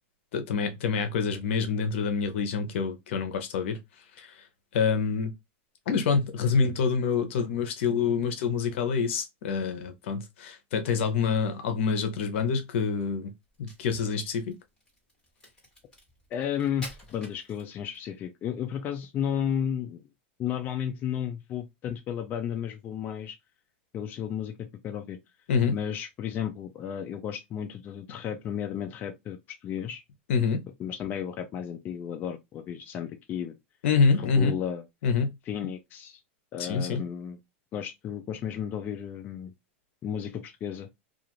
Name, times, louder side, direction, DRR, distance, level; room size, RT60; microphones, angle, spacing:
voice 1, 0.3-3.8 4.2-4.3 4.7-5.3 5.9-13.3 13.6-14.6 25.5-25.7 30.3-30.6 33.8-34.5 35.0-35.3 36.6-37.0, left 5 dB, 70° left, 0.8 m, -26 dB
Crack, 13.5-18.1, left 1 dB, 10° left, 1.4 m, -49 dB
voice 2, 16.3-20.0 20.4-23.4 23.9-25.2 25.7-30.0 30.8-33.5 34.2-34.8 35.5-36.2 36.5-37.4 37.7-39.5 40.0-40.9, left 9 dB, 30° left, 0.4 m, -33 dB
2.4 x 2.4 x 2.9 m
supercardioid pair, 140°, 7 cm